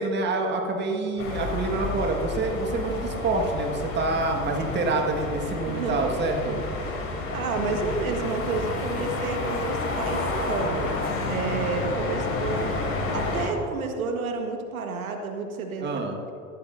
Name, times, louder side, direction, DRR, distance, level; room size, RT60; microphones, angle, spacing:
voice 1, 0.0-6.6 15.8-16.2, right 3 dB, 25° right, 2 dB, 1.7 m, -27 dB
sound 1, 1.2-13.5, left 2 dB, 30° left, 3.1 m, -30 dB
voice 2, 5.6-6.0 6.8-7.0 7.3-10.9 11.3-12.8 13.1-16.0, right 4 dB, 75° right, 4 dB, 1.6 m, -30 dB
15.5 x 13.5 x 2.7 m, 2.5 s
hypercardioid pair, 95°, 42 cm